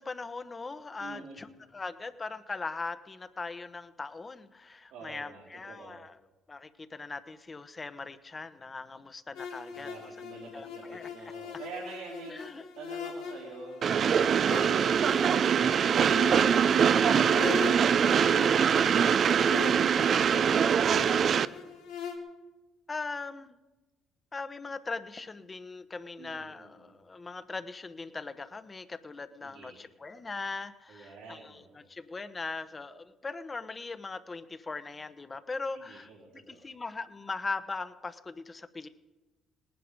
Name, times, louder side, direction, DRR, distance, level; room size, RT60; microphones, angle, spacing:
voice 1, 0.0-1.5 1.7-6.1 6.5-10.1 10.5-11.1 12.3-12.6 14.4-14.9 22.9-23.6 24.3-38.9, left 3 dB, 30° left, 12 dB, 1.0 m, -40 dB
voice 2, 1.0-1.4 4.9-6.0 9.7-12.4 12.7-15.0 26.2-26.9 29.4-29.8 30.9-31.8 35.7-36.7, right 4 dB, 80° right, -4 dB, 3.9 m, -47 dB
sound 1, 9.3-22.2, left 7 dB, 85° left, 2.2 m, -41 dB
Train, 13.8-21.5, right 7 dB, 55° right, 0.5 m, -23 dB
19.0 x 10.5 x 5.2 m, 1.1 s
supercardioid pair, 70°, 0 cm